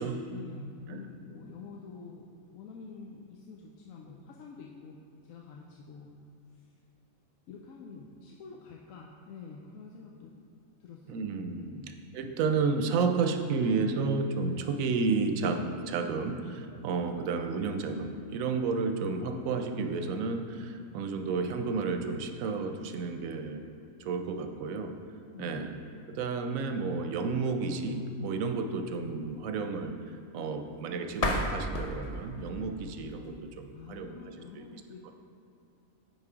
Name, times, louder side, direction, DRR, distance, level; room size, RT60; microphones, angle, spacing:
voice 1, 0.3-5.0 5.2-6.1 6.5-6.7 7.5-10.3 10.8-11.2 11.6-12.0 25.3-25.8 33.7-35.1, left 5 dB, 90° left, -1 dB, 1.0 m, -47 dB
voice 2, 11.1-11.7 12.1-23.6 24.0-24.9 25.4-25.7 26.1-34.7 35.0-35.1, right 4 dB, 90° right, 6 dB, 1.0 m, -31 dB
sound 1, 31.1-34.0, left 2 dB, 50° left, 0.4 m, -34 dB
8.9 x 3.8 x 4.8 m, 2.6 s
omnidirectional pair, 1.4 m